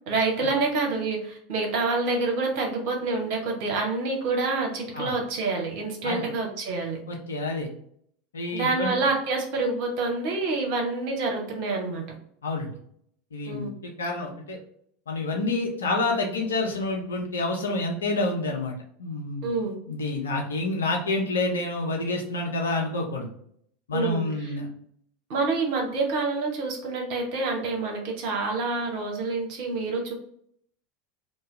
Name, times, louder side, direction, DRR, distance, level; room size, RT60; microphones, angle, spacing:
voice 1, 0.1-7.0 8.5-12.0 13.5-13.7 19.4-19.7 23.9-24.5 25.3-30.1, right 3 dB, 55° right, 1 dB, 0.9 m, -27 dB
voice 2, 7.1-7.7 8.3-8.9 12.4-12.7 13.3-14.6 15.1-18.7 19.0-19.5 19.9-23.3 23.9-24.7, left 2 dB, 75° left, 1 dB, 0.6 m, -28 dB
2.7 x 2.2 x 3.2 m, 0.66 s
figure-of-eight pair, 80°, 0 cm